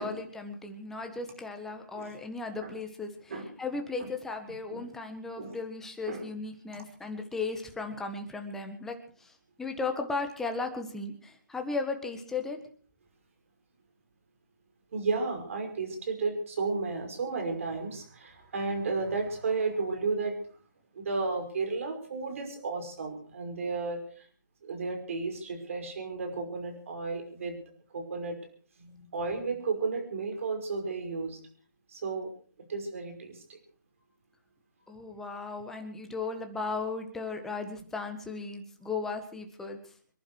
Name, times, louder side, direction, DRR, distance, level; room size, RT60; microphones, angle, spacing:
voice 1, 0.0-12.6 34.9-39.9, left 3 dB, 5° left, 5 dB, 1.6 m, -36 dB
voice 2, 14.9-20.4 21.0-24.3 24.6-27.6 27.9-28.4 28.8-31.4 31.9-32.3 32.7-33.6, right 4 dB, 45° right, 5 dB, 5.5 m, -33 dB
26.0 x 11.5 x 4.8 m, 0.43 s
hypercardioid pair, 160°, 10 cm